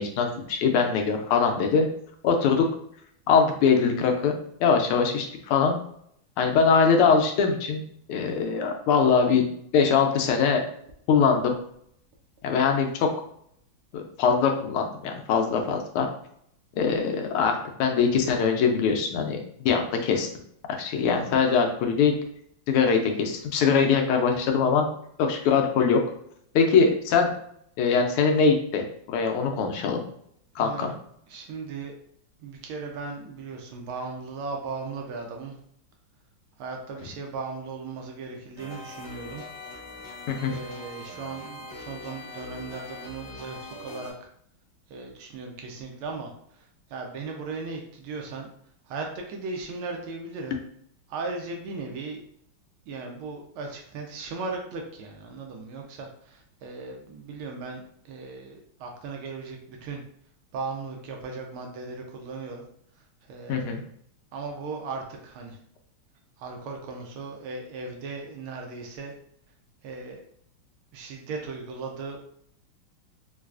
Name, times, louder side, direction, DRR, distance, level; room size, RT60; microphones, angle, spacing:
voice 1, 0.0-1.8 2.2-2.7 3.3-4.3 4.6-5.8 6.4-7.8 8.1-9.4 9.7-10.6 11.1-11.6 12.4-13.1 13.9-16.1 16.8-20.3 20.7-22.2 22.7-24.9 25.2-26.0 26.5-27.3 27.8-30.0 30.6-30.9 40.3-40.6 63.5-63.8, left 5 dB, 90° left, 4 dB, 1.5 m, -22 dB
voice 2, 30.6-31.0 31.3-32.0 32.4-35.6 36.6-39.4 40.5-44.1 44.9-46.6 46.9-48.5 48.9-50.6 51.1-52.2 52.9-60.0 60.5-62.7 63.2-63.8 64.3-65.6 66.4-69.1 69.8-70.2 70.9-72.2, right 4 dB, 80° right, 2 dB, 1.5 m, -37 dB
sound 1, 38.6-44.1, left 2 dB, 60° left, 1.4 m, -42 dB
4.4 x 2.3 x 2.4 m, 0.69 s
omnidirectional pair, 2.3 m